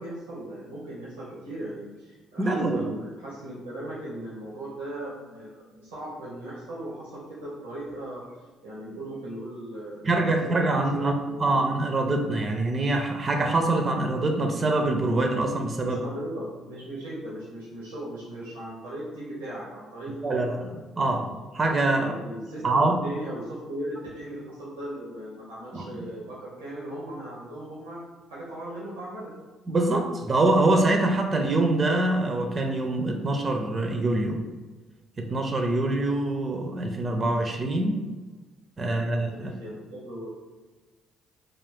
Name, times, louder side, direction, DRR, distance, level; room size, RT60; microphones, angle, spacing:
voice 1, 0.0-8.2 8.6-10.4 10.7-11.7 15.8-20.8 21.9-28.0 28.3-29.4 38.8-40.3, right 1 dB, 90° right, -8 dB, 0.7 m, -38 dB
voice 2, 2.4-2.9 10.0-16.0 20.2-22.2 22.6-23.0 25.7-26.1 29.7-34.4 35.2-38.0 38.8-39.5, right 2 dB, 40° right, 3 dB, 0.4 m, -25 dB
2.4 x 2.4 x 3.5 m, 1.3 s
hypercardioid pair, 50°, 0 cm